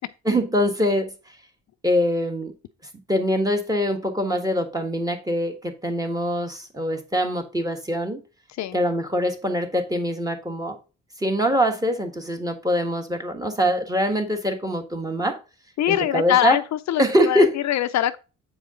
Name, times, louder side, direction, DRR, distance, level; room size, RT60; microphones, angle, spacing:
voice 1, 0.2-1.1 1.8-2.5 3.1-8.2 8.7-10.8 11.2-15.4 15.9-16.6 17.0-17.5, equal, 10° right, 1.5 m, -23 dB
voice 2, 15.8-18.2, left 12 dB, 65° left, 0.5 m, -23 dB
7.9 x 4.8 x 3.7 m
cardioid pair, 90°, 30 cm